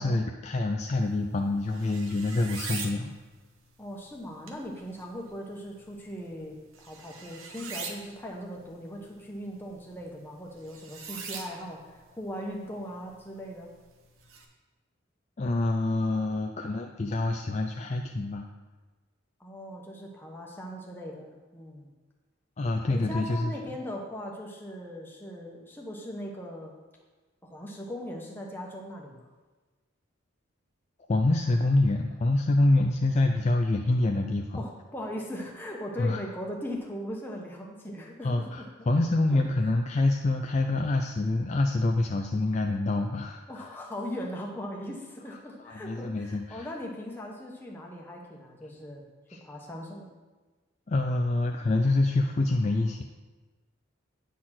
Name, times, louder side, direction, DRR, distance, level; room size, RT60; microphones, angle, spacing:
voice 1, 0.0-3.1 15.4-18.5 22.6-23.5 31.1-34.6 36.0-36.2 38.2-43.7 45.6-46.7 49.3-49.4 50.9-53.0, left 2 dB, 35° left, 3 dB, 0.4 m, -26 dB
sound 1, 1.0-14.4, right 5 dB, 80° right, 1.0 m, -45 dB
voice 2, 3.8-13.7 19.4-21.9 22.9-26.7 27.4-29.2 34.5-38.7 39.0-39.4 43.5-49.0 49.4-50.1, equal, 10° left, -1 dB, 1.1 m, -39 dB
9.3 x 4.2 x 6.0 m, 1.3 s
head